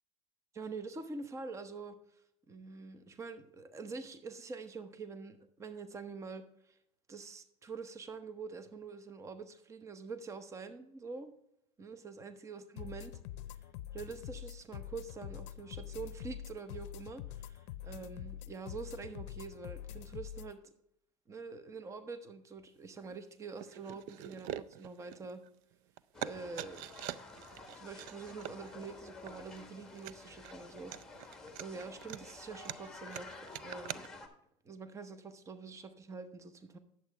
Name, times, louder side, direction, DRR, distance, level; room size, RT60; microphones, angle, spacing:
voice 1, 0.5-2.0 2.5-6.7 7.1-11.3 11.8-13.1 13.9-20.6 21.3-25.4 26.2-26.9 27.7-34.1 34.6-36.8, right 4 dB, 20° right, 10 dB, 0.9 m, -46 dB
sound 1, 12.8-20.5, left 12 dB, 80° left, 0.6 m, -45 dB
sound 2, 23.0-23.2 23.6-25.7 26.0-34.1, right 12 dB, 65° right, 0.4 m, -44 dB
sound 3, 26.1-34.3, left 3 dB, 5° left, 1.4 m, -51 dB
10.0 x 7.6 x 3.4 m, 0.74 s
supercardioid pair, 130°, 14 cm